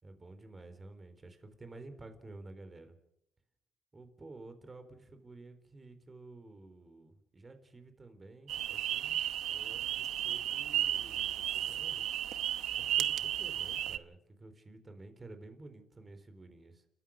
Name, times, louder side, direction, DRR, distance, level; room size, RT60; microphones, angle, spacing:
voice 1, 0.0-3.0 3.9-12.1 12.8-16.8, right 2 dB, 25° right, 9 dB, 3.9 m, -52 dB
sound 1, 8.5-14.0, right 11 dB, 80° right, 0.9 m, -33 dB
29.5 x 14.0 x 6.5 m, 0.77 s
cardioid pair, 90°, 0 cm